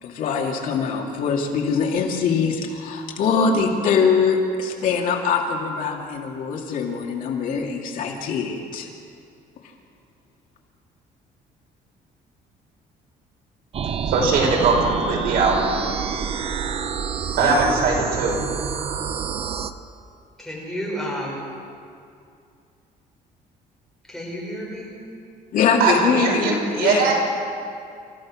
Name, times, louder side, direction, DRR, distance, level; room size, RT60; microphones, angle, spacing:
voice 1, 0.0-8.9 25.5-27.1, left 5 dB, 60° left, 1 dB, 2.4 m, -23 dB
sound 1, 13.7-19.7, right 7 dB, 40° right, 0.7 m, -28 dB
voice 2, 14.1-15.6 17.4-18.4 25.8-27.1, right 4 dB, 70° right, -1 dB, 5.5 m, -20 dB
voice 3, 20.4-21.4 24.1-24.9 26.1-26.4, equal, ahead, -4 dB, 5.8 m, -31 dB
28.0 x 15.0 x 6.3 m, 2.4 s
cardioid pair, 165°, 16 cm